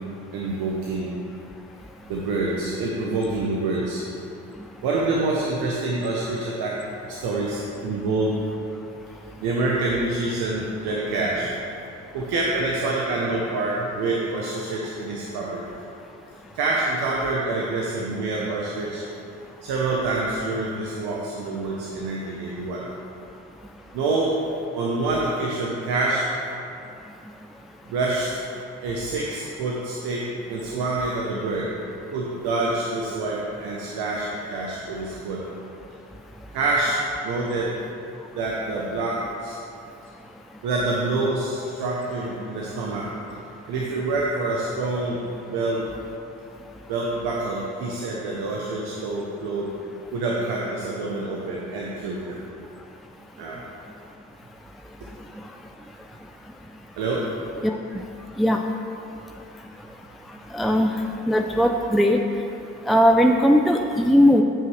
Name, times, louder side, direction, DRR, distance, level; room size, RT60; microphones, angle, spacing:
voice 1, 0.3-1.1 2.1-4.0 4.8-8.3 9.4-11.5 12.1-15.6 16.5-19.0 19.6-22.8 23.9-24.4 24.7-26.4 27.9-28.3 28.8-31.7 32.1-35.4 36.5-37.0 37.2-37.7 38.3-39.6 40.6-43.1 43.7-45.2 45.5-45.8 46.9-49.7 50.1-52.4 53.4-53.6 57.0-57.2, right 2 dB, 75° right, -3 dB, 1.0 m, -26 dB
voice 2, 60.5-60.9 61.3-62.2 62.9-64.4, equal, ahead, 3 dB, 0.5 m, -18 dB
14.5 x 5.6 x 3.2 m, 2.7 s
hypercardioid pair, 40°, 38 cm